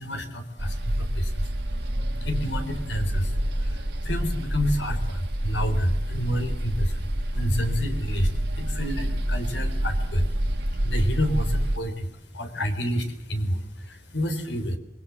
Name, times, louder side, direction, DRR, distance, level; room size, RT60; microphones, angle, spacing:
voice 1, 0.0-1.8 2.1-14.8, equal, 85° left, 8 dB, 4.0 m, -29 dB
sound 1, 0.6-11.8, right 1 dB, 65° right, 1.9 m, -27 dB
27.0 x 22.0 x 7.4 m, 0.76 s
head